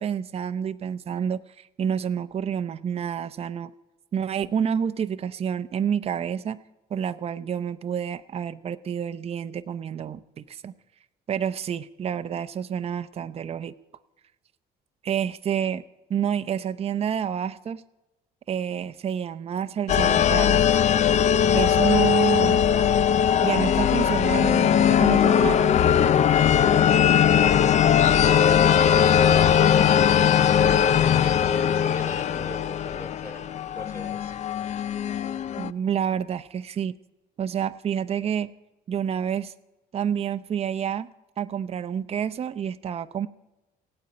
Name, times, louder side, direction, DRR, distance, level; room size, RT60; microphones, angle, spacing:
voice 1, 0.0-3.7 4.1-6.6 6.9-10.7 11.3-13.7 15.0-15.8 16.1-17.8 18.5-20.7 21.5-22.6 23.4-25.8 35.6-36.9 37.4-38.5 38.9-39.5 39.9-41.1 41.4-43.3, right 8 dB, 35° right, 10 dB, 0.6 m, -28 dB
sound 1, 19.9-35.7, left 8 dB, 45° left, 0.5 m, -20 dB
voice 2, 31.1-34.3, left 1 dB, 15° left, 3 dB, 3.2 m, -41 dB
17.0 x 9.2 x 8.7 m, 0.97 s
cardioid pair, 110°, 17 cm